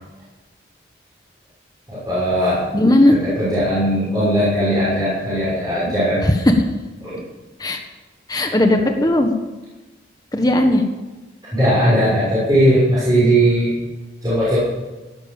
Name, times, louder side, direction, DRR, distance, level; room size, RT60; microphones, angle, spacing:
voice 1, 1.9-2.6 3.1-6.2 7.0-7.2 11.5-13.7 14.2-14.6, right 1 dB, 20° right, -9 dB, 6.6 m, -18 dB
voice 2, 2.7-3.1 6.2-6.5 7.6-7.8 8.3-9.3 10.3-10.8, left 1 dB, 20° left, 4 dB, 1.5 m, -16 dB
16.5 x 12.0 x 7.3 m, 1.2 s
head